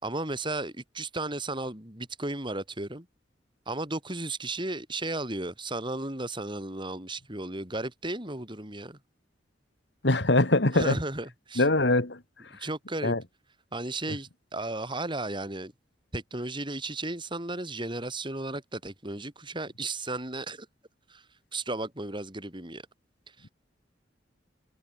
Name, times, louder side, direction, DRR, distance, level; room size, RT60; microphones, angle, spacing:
voice 1, 0.0-3.1 3.7-9.0 10.7-11.7 12.6-13.2 13.7-15.7 16.1-20.7 21.1-21.2 21.5-22.8 23.4-23.5, right 2 dB, 25° right, 4.7 m, -34 dB
voice 2, 10.0-10.9 11.6-12.2 13.0-13.2, left 2 dB, 65° left, 2.2 m, -22 dB
head